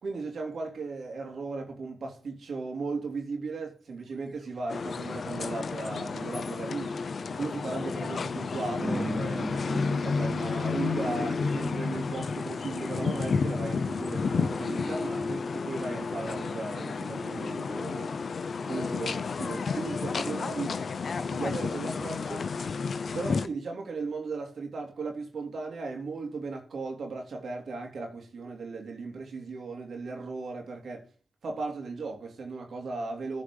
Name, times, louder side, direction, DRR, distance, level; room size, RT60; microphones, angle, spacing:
voice 1, 0.0-7.0 7.4-18.1 18.7-20.8 21.3-22.6 23.1-31.1 31.4-33.4, right 3 dB, 70° right, 3.2 m, -36 dB
sound 1, 4.3-18.2 18.6-18.7, equal, 5° right, 3.7 m, -41 dB
sound 2, 4.7-23.5, left 5 dB, 65° left, 0.7 m, -31 dB
14.5 x 5.0 x 5.4 m
supercardioid pair, 40°, 0 cm